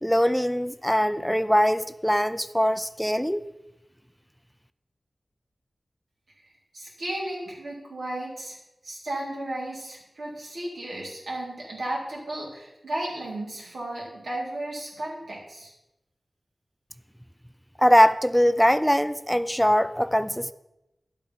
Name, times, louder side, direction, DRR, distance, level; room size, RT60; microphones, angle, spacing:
voice 1, 0.0-3.5 17.8-20.5, equal, 5° left, 13 dB, 0.4 m, -22 dB
voice 2, 6.7-8.6 8.8-15.7, right 1 dB, 90° right, -4 dB, 3.8 m, -34 dB
10.5 x 8.5 x 5.7 m, 0.93 s
wide cardioid pair, 75°, 0 cm